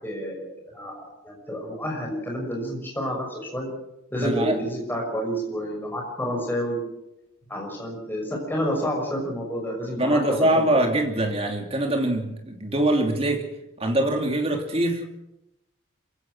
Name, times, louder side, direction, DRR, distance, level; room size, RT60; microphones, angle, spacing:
voice 1, 0.0-3.7 4.1-6.8 7.5-10.6, equal, 10° left, -1 dB, 6.1 m, -29 dB
voice 2, 4.2-4.5 10.0-13.4 13.8-15.1, right 1 dB, 30° right, 3 dB, 3.1 m, -23 dB
27.0 x 16.5 x 6.3 m, 0.86 s
head